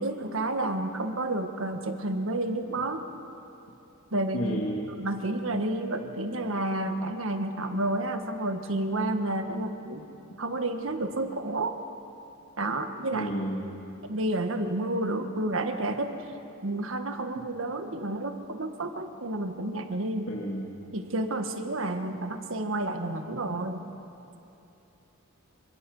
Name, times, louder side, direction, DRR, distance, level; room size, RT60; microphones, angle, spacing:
voice 1, 0.0-3.0 4.1-4.4 5.0-10.0 10.4-11.7 12.6-13.3 14.1-16.1 16.6-20.3 20.9-23.9, right 2 dB, 70° right, 6 dB, 1.6 m, -30 dB
voice 2, 4.3-4.8 13.1-13.6 20.3-20.7, equal, 70° left, -3 dB, 2.7 m, -31 dB
26.5 x 24.0 x 5.5 m, 2.9 s
head